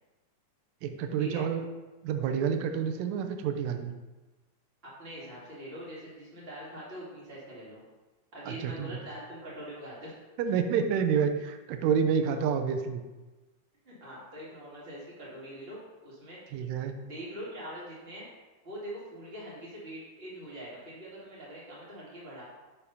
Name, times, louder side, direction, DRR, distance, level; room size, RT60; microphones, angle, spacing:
voice 1, 0.8-1.7 2.0-3.9 8.5-9.0 10.4-13.0 16.5-16.9, right 7 dB, 80° right, 6 dB, 1.9 m, -28 dB
voice 2, 4.8-7.8 8.3-10.1 13.9-16.6 17.0-18.3 18.6-22.4, right 1 dB, 20° right, -7 dB, 2.1 m, -43 dB
6.7 x 3.5 x 5.5 m, 1.2 s
omnidirectional pair, 3.3 m